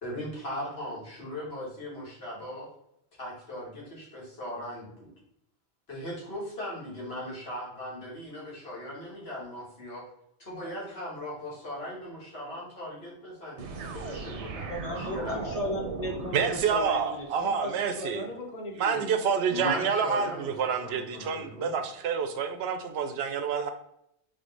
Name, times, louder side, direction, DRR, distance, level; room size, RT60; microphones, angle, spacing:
voice 1, 0.0-2.7 3.2-5.1 5.9-10.0 10.4-15.4 19.5-20.5 20.8-21.8, left 1 dB, 65° left, -5 dB, 2.1 m, -38 dB
sound 1, 13.6-17.5, right 4 dB, 90° right, 1.0 m, -38 dB
voice 2, 14.6-19.4, left 1 dB, 35° left, 1 dB, 0.9 m, -36 dB
voice 3, 16.3-18.2 18.8-23.7, right 6 dB, 70° right, 8 dB, 0.8 m, -28 dB
3.7 x 3.5 x 3.9 m, 0.77 s
omnidirectional pair, 1.1 m